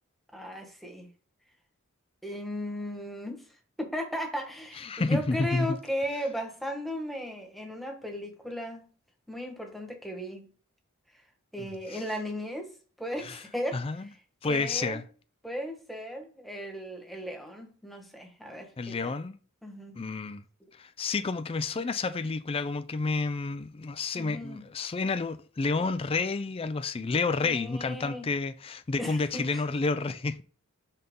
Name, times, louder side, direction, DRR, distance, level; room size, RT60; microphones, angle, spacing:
voice 1, 0.3-1.1 2.2-3.4 3.8-8.9 9.3-10.5 11.5-14.2 14.4-15.0 15.4-19.1 19.6-20.0 24.1-24.7 27.4-28.3 29.0-29.6, equal, ahead, 1.4 m, -36 dB
voice 2, 4.8-5.8 11.9-12.0 13.2-13.3 13.7-14.1 14.4-15.0 18.8-19.4 19.9-20.4 20.8-30.4, left 3 dB, 25° left, 0.4 m, -30 dB
5.8 x 5.4 x 3.7 m
head